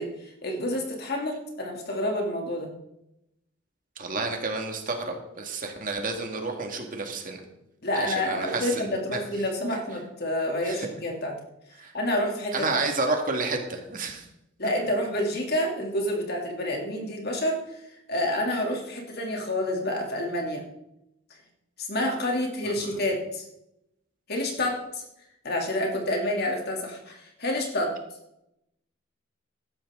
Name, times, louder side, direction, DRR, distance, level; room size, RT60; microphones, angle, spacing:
voice 1, 0.0-2.7 7.8-11.3 11.9-12.8 14.6-17.8 18.1-20.6 21.8-23.4 24.3-25.0 25.4-28.0, left 1 dB, 50° left, 1 dB, 2.8 m, -28 dB
voice 2, 4.0-7.4 7.9-9.2 10.6-10.9 11.8-11.9 12.5-14.2, right 3 dB, 40° right, 3 dB, 2.0 m, -30 dB
15.5 x 12.0 x 3.8 m, 0.85 s
head